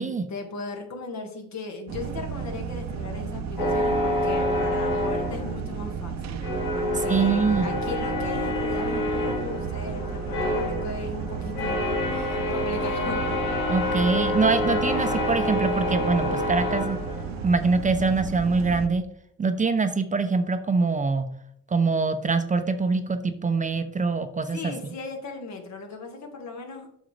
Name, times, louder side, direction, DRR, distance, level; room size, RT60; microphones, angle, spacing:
voice 1, 0.3-13.2 13.8-13.9 24.5-26.9, left 3 dB, 65° left, 3 dB, 1.8 m, -37 dB
sound 1, 1.9-18.9, right 6 dB, 65° right, 0.7 m, -34 dB
sound 2, 3.6-6.0 6.4-17.6, left 1 dB, 90° left, 2.3 m, -28 dB
voice 2, 7.1-7.7 13.7-17.0 17.4-19.1 19.4-21.3 21.7-24.9, right 4 dB, 25° right, 9 dB, 0.6 m, -24 dB
7.7 x 6.2 x 3.3 m, 0.70 s
cardioid pair, 90°, 30 cm